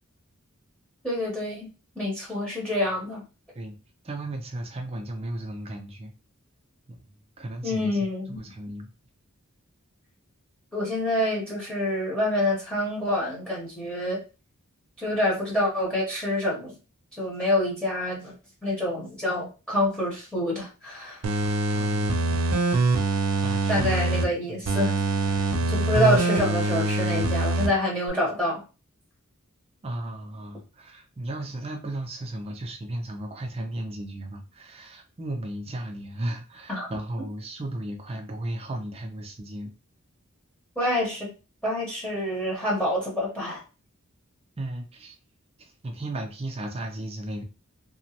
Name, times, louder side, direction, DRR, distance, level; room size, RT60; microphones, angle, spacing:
voice 1, 1.0-1.7 1.9-3.2 7.6-8.4 10.7-14.2 15.0-16.7 17.2-18.3 18.6-21.2 23.7-24.9 25.7-28.6 36.7-36.9 40.8-41.3 41.6-43.6, left 1 dB, 5° left, -4 dB, 0.8 m, -27 dB
voice 2, 4.0-6.1 6.9-7.0 7.4-8.0 8.3-8.9 21.7-22.4 23.4-24.0 24.3-24.7 29.8-39.7 44.6-45.2 45.6-47.4, right 1 dB, 30° right, 4 dB, 0.4 m, -35 dB
sound 1, 21.2-24.2 24.7-27.7 28.1-28.2, right 2 dB, 90° right, 0.5 m, -24 dB
2.9 x 2.1 x 2.8 m, 0.32 s
head